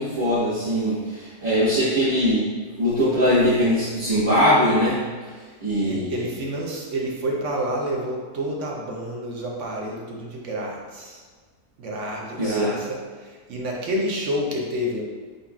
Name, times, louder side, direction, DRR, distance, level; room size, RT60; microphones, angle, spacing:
voice 1, 0.0-2.5 2.8-5.0 5.6-6.1 12.4-12.7, equal, 35° right, -13 dB, 1.4 m, -21 dB
voice 2, 5.8-11.2 11.8-15.0, equal, 55° right, -1 dB, 1.0 m, -29 dB
5.5 x 3.8 x 2.3 m, 1.5 s
omnidirectional pair, 1.7 m